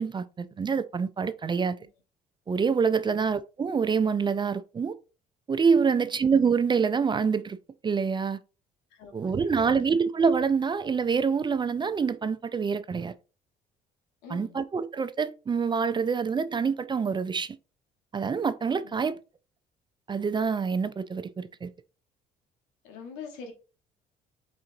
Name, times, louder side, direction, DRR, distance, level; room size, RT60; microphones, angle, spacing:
voice 1, 0.0-1.8 2.5-4.9 5.5-7.6 7.8-8.4 9.1-13.1 14.3-17.6 18.1-19.2 20.1-21.7, right 5 dB, 25° right, 0.4 m, -26 dB
voice 2, 5.9-6.2 8.9-9.9 14.2-14.6 18.8-18.9 22.8-23.5, left 5 dB, 85° left, 1.0 m, -45 dB
4.4 x 3.6 x 2.6 m
supercardioid pair, 65°, 19 cm